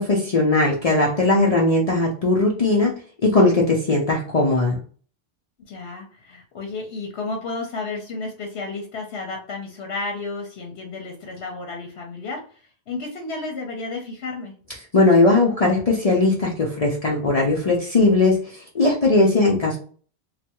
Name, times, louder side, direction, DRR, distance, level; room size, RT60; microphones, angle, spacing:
voice 1, 0.0-2.9 3.2-4.8 14.9-19.8, left 2 dB, 40° left, -3 dB, 0.6 m, -19 dB
voice 2, 5.6-14.5, left 3 dB, 75° left, 2 dB, 1.0 m, -32 dB
3.2 x 2.3 x 2.9 m, 0.42 s
omnidirectional pair, 1.1 m